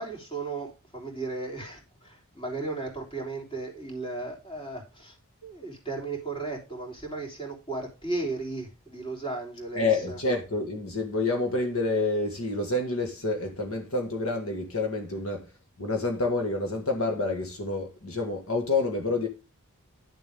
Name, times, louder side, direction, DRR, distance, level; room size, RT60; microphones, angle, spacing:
voice 1, 0.0-5.2 5.4-10.3, right 3 dB, 20° left, 3.5 m, -35 dB
voice 2, 9.7-15.5 15.8-19.3, left 3 dB, 65° left, 1.8 m, -28 dB
11.0 x 7.3 x 3.6 m
head